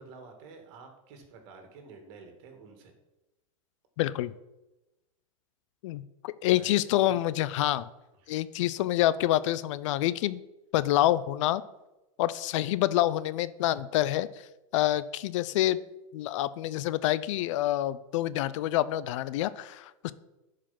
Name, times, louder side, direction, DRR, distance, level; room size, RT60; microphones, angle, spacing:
voice 1, 0.0-2.9 6.5-7.2 8.2-8.4, right 4 dB, 55° right, 4 dB, 2.3 m, -49 dB
voice 2, 4.0-4.3 5.8-7.9 8.3-10.4 10.7-11.6 12.2-14.3 14.7-15.8 16.1-20.1, left 14 dB, 60° left, 16 dB, 0.5 m, -27 dB
10.0 x 5.0 x 5.9 m, 1.0 s
hypercardioid pair, 105°, 18 cm